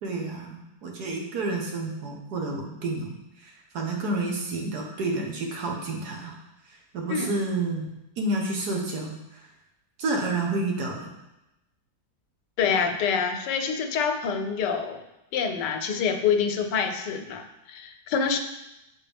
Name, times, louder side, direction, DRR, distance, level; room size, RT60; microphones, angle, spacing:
voice 1, 0.0-3.1 3.4-6.3 6.9-9.4 10.0-11.1, right 2 dB, 70° right, 0 dB, 1.6 m, -30 dB
voice 2, 12.6-15.0 15.3-18.4, left 6 dB, 85° left, 6 dB, 1.3 m, -26 dB
7.7 x 4.3 x 3.4 m, 0.92 s
omnidirectional pair, 1.8 m